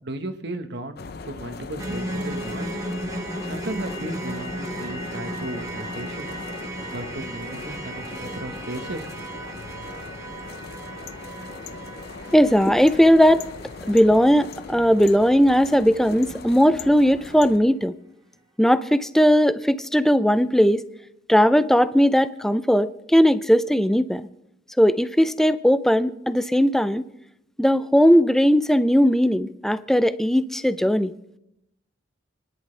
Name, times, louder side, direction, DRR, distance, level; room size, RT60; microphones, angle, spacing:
voice 1, 0.0-2.8 3.4-6.3 6.9-9.1, right 1 dB, 60° right, 7 dB, 1.3 m, -35 dB
sound 1, 1.0-17.6, left 4 dB, 55° left, 0.7 m, -39 dB
sound 2, 1.8-16.0 16.3-16.4 16.9-17.0, right 1 dB, 15° right, 1.1 m, -35 dB
voice 2, 12.3-13.4 13.9-17.9 18.6-20.8 21.3-24.2 24.8-27.0 27.6-31.1, equal, ahead, 12 dB, 0.5 m, -18 dB
28.0 x 11.0 x 3.3 m, 0.82 s
head